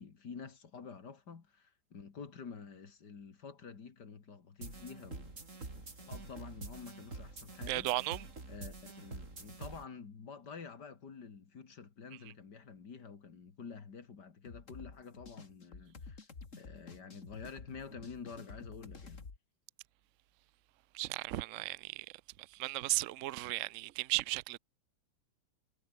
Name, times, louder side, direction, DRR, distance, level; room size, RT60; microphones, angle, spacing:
voice 1, 0.0-5.4 5.7-7.9 8.4-16.2 16.5-19.2, left 5 dB, 60° left, 2.8 m, -49 dB
sound 1, 4.6-9.8, right 3 dB, 40° right, 4.0 m, -47 dB
voice 2, 7.7-8.2 20.9-22.1 22.6-24.6, right 19 dB, 70° right, 0.7 m, -35 dB
sound 2, 14.5-19.4, left 4 dB, 40° left, 2.7 m, -50 dB
omnidirectional pair, 2.1 m